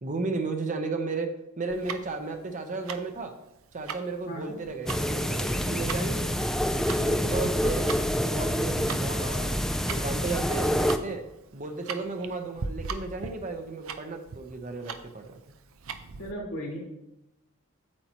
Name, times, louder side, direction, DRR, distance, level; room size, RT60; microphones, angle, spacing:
voice 1, 0.0-1.3 1.6-3.3 3.7-6.5 7.0-7.9 8.2-11.2 11.5-15.4, right 3 dB, 35° right, 5 dB, 0.8 m, -34 dB
Tick-tock, 1.7-16.3, right 5 dB, 70° right, 0.6 m, -40 dB
sound 1, 4.9-11.0, equal, ahead, 0.4 m, -27 dB
voice 2, 16.2-16.9, equal, 80° left, -4 dB, 3.1 m, -36 dB
8.7 x 8.1 x 3.0 m, 0.88 s
head